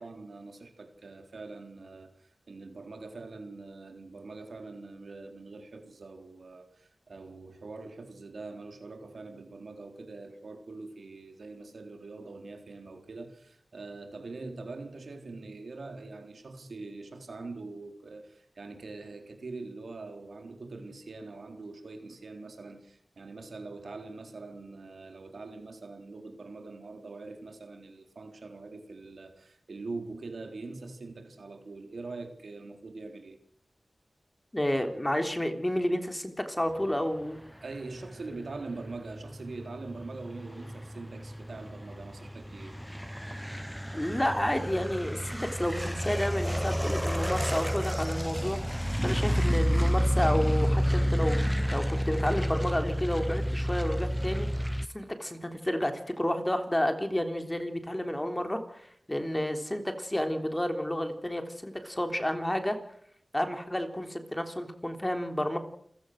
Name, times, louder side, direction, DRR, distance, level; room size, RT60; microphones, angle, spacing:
voice 1, 0.0-33.4 37.6-42.8, right 3 dB, 85° right, 3.7 m, -43 dB
voice 2, 34.5-37.4 43.9-45.2 45.5-54.7 54.9-62.8 63.3-65.6, left 1 dB, 15° left, 3.4 m, -31 dB
sound 1, 38.3-54.9, equal, ahead, 0.9 m, -30 dB
28.5 x 16.0 x 6.5 m
wide cardioid pair, 85°, 0 cm